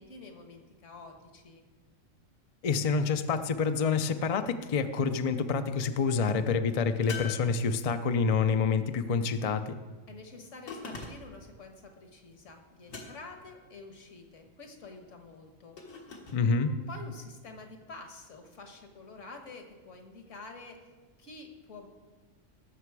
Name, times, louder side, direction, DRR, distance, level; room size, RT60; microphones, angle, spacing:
voice 1, 0.0-1.6 10.1-20.8 21.2-21.9, left 2 dB, 65° left, 4 dB, 1.7 m, -48 dB
voice 2, 2.6-9.8 16.3-16.7, left 5 dB, 50° left, 9 dB, 0.4 m, -27 dB
sound 1, 7.1-8.2 10.7-11.5 12.9-13.5 15.8-16.4, left 4 dB, 80° left, 2.0 m, -42 dB
17.0 x 6.7 x 4.8 m, 1.3 s
omnidirectional pair, 1.4 m